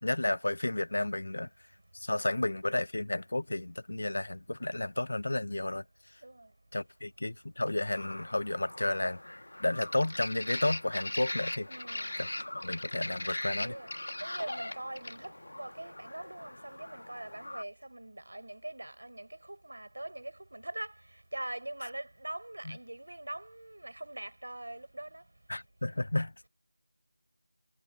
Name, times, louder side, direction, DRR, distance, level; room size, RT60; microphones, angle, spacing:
voice 1, 0.0-1.5 1.9-5.8 6.7-9.2 9.6-11.7 12.2-12.3 12.6-13.7 25.5-26.3, left 2 dB, 45° left, 0.3 m, -32 dB
sound 1, 7.9-17.6, left 1 dB, 65° left, 1.2 m, -40 dB
voice 2, 11.7-12.1 13.2-13.3 13.6-13.9 14.2-25.2, right 1 dB, 60° right, 5.4 m, -42 dB
figure-of-eight pair, 180°, 0 cm